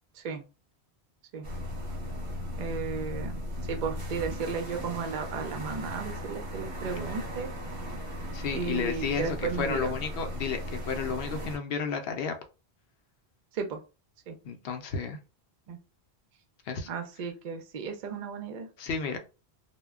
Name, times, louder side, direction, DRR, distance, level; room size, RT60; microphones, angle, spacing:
sound 1, 1.4-11.6, equal, 35° right, 0.8 m, -37 dB
voice 1, 2.6-3.4 3.7-7.5 8.5-9.9 13.5-13.8 14.3-14.4 15.7-15.8 16.9-18.7, right 5 dB, 55° right, 5 dB, 0.5 m, -34 dB
voice 2, 8.3-12.4 14.4-15.2 16.7-16.9 18.8-19.2, left 6 dB, 65° left, 5 dB, 0.7 m, -32 dB
2.1 x 2.1 x 3.4 m, 0.32 s
omnidirectional pair, 1.1 m